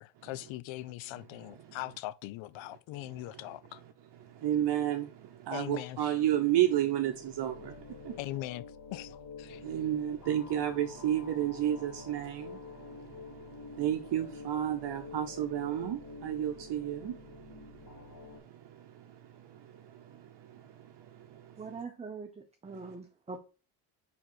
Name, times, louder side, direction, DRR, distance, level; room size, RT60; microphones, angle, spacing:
voice 1, 0.0-3.8 5.5-6.0 8.2-8.6 8.9-9.6, left 16 dB, 80° left, 0.6 m, -41 dB
voice 2, 1.4-1.8 3.0-3.4 3.7-3.8 4.2-8.2 9.5-21.8 22.7-22.9, right 11 dB, 60° right, 0.8 m, -33 dB
sound 1, 6.9-18.4, left 5 dB, 45° left, 2.5 m, -48 dB
voice 3, 21.6-23.4, right 4 dB, 15° right, 0.7 m, -43 dB
5.2 x 4.7 x 4.5 m
cardioid pair, 95°, 46 cm